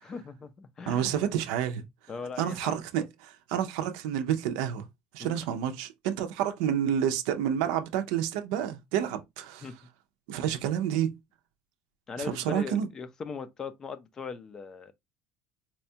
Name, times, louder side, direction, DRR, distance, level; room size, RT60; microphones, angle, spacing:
voice 1, 0.0-1.3 2.1-2.8 5.2-5.4 9.6-9.8 12.1-14.9, left 5 dB, 25° left, 0.4 m, -39 dB
voice 2, 0.9-1.8 2.4-4.8 5.1-9.7 10.3-11.1 12.2-12.9, right 9 dB, 80° right, 0.5 m, -29 dB
4.2 x 2.2 x 2.7 m
cardioid pair, 150°, 2 cm